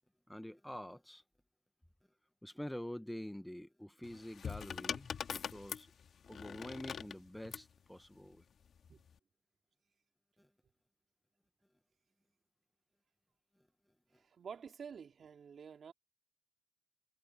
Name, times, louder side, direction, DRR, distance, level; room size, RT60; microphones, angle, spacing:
voice 1, 0.3-1.2 2.4-5.9 6.3-8.4 10.4-10.5, equal, 5° left, 0.9 m, -47 dB
sound 1, 4.0-7.7 8.8-9.1, left 7 dB, 55° left, 1.6 m, -43 dB
voice 2, 14.1-15.9, right 6 dB, 50° right, 2.9 m, -50 dB
cardioid pair, 90°, 0 cm